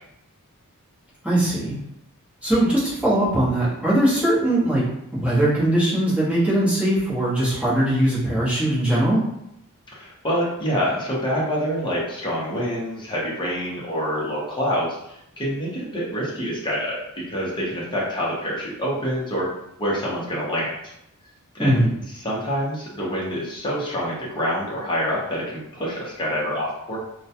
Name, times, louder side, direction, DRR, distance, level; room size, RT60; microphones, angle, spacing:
voice 1, 1.2-1.7 2.4-4.8 5.1-9.2 21.6-21.9, right 1 dB, 5° right, -10 dB, 0.9 m, -20 dB
voice 2, 9.9-19.5 19.8-20.7 21.5-21.8 22.2-27.0, equal, 20° left, -5 dB, 0.7 m, -26 dB
2.2 x 2.2 x 2.7 m, 0.81 s
head